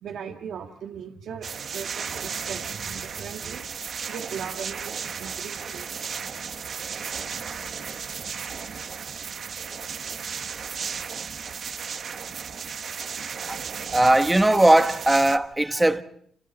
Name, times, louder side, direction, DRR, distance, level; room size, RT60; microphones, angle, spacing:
voice 1, 0.0-3.7 4.1-6.5, right 7 dB, 70° right, 1.7 m, -39 dB
sound 1, 1.4-15.4, right 6 dB, 50° right, 1.3 m, -34 dB
voice 2, 13.9-16.0, right 1 dB, 10° right, 1.3 m, -19 dB
29.5 x 27.0 x 4.3 m
cardioid pair, 90°, 0 cm